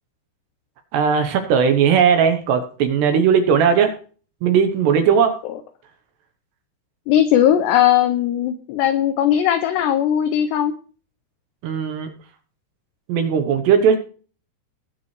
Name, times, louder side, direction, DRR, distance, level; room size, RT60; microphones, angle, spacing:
voice 1, 0.9-4.0 4.4-5.4 11.6-12.1 13.1-14.0, right 7 dB, 70° right, 7 dB, 2.8 m, -17 dB
voice 2, 7.1-10.8, left 10 dB, 85° left, 10 dB, 2.4 m, -18 dB
19.5 x 7.0 x 3.3 m, 0.40 s
omnidirectional pair, 5.8 m